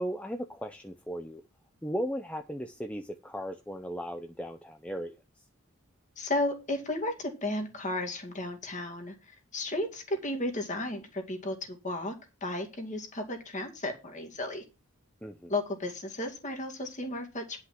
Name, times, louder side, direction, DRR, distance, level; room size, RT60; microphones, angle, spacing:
voice 1, 0.0-1.4 1.8-5.2 15.2-15.5, equal, 5° left, 0.5 m, -36 dB
voice 2, 6.2-12.1 12.4-14.6 15.5-17.6, left 1 dB, 35° left, 2.3 m, -34 dB
10.5 x 5.7 x 5.9 m
head